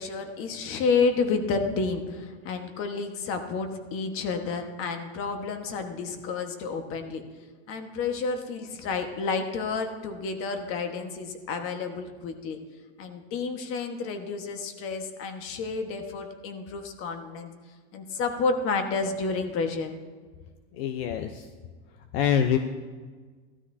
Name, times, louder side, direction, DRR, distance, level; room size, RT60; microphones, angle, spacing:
voice 1, 0.0-7.2 7.7-12.6 13.0-17.5 17.9-19.9, left 4 dB, 40° left, 6 dB, 1.5 m, -30 dB
voice 2, 20.7-21.5 22.1-22.6, left 8 dB, 65° left, 6 dB, 0.8 m, -25 dB
16.0 x 12.5 x 2.8 m, 1.5 s
supercardioid pair, 140°, 33 cm